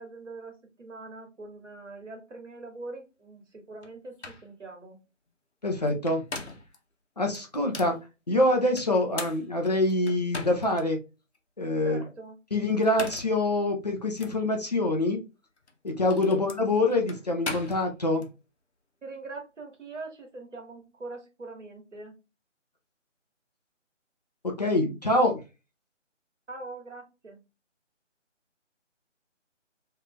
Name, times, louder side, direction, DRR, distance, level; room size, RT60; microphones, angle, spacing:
voice 1, 0.0-5.0 11.8-12.4 16.2-16.4 19.0-22.1 26.5-27.4, right 3 dB, 70° right, 1.6 m, -42 dB
sound 1, 3.8-3.9 4.2-4.5 5.9-6.8 7.3-8.0 8.8-10.8 11.3-11.4 12.7-13.4 14.2-14.4 15.6-18.3, left 3 dB, 60° left, 1.0 m, -39 dB
voice 2, 5.6-6.2 7.2-8.0 8.3-11.0 11.6-12.0 12.5-15.2 15.8-18.3 24.4-25.4, left 2 dB, 35° left, 0.6 m, -25 dB
3.2 x 2.6 x 3.4 m
figure-of-eight pair, 155°, 38 cm